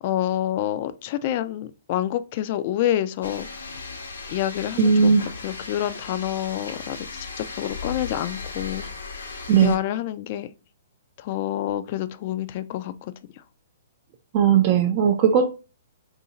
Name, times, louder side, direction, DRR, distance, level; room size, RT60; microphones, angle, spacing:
voice 1, 0.0-3.5 4.3-5.1 5.4-8.8 9.1-9.2 9.6-10.5 11.2-13.4, left 12 dB, 45° left, 0.4 m, -28 dB
sound 1, 3.2-9.8, left 4 dB, 80° left, 0.9 m, -36 dB
voice 2, 4.8-5.3 9.5-9.8 14.3-15.5, right 7 dB, 40° right, 0.5 m, -18 dB
2.7 x 2.6 x 3.9 m
hypercardioid pair, 130°, 0 cm